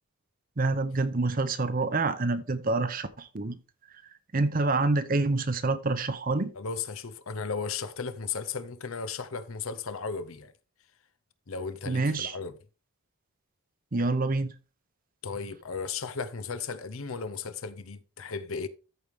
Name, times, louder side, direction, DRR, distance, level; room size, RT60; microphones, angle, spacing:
voice 1, 0.6-3.6 4.3-6.5 11.9-12.3 13.9-14.5, right 3 dB, 40° right, 0.7 m, -27 dB
voice 2, 6.5-10.5 11.5-12.6 15.2-18.7, left 5 dB, 70° left, 0.7 m, -35 dB
14.0 x 4.8 x 3.5 m
head